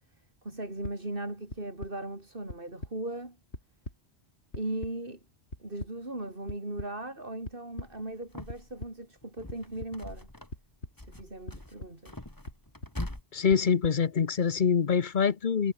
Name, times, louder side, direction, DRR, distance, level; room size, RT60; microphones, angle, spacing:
voice 1, 0.4-3.4 4.5-5.2 5.6-10.3 11.1-12.2, right 2 dB, 55° right, 4.9 m, -38 dB
sound 1, 0.8-0.9 1.5-1.9 2.5-2.9 3.3-4.0 4.5-4.9 5.5-5.9 6.5-6.9 7.4-7.9 8.5-8.9 9.5-9.9 10.5-10.9 11.5-11.9 12.5-12.9 13.5-13.9, left 1 dB, 85° left, 8.2 m, -40 dB
sound 2, 7.8-8.9 9.2-10.7 11.0-13.2, left 1 dB, 20° left, 2.5 m, -42 dB
voice 2, 13.3-15.7, left 6 dB, 50° left, 1.0 m, -25 dB
omnidirectional pair, 1.1 m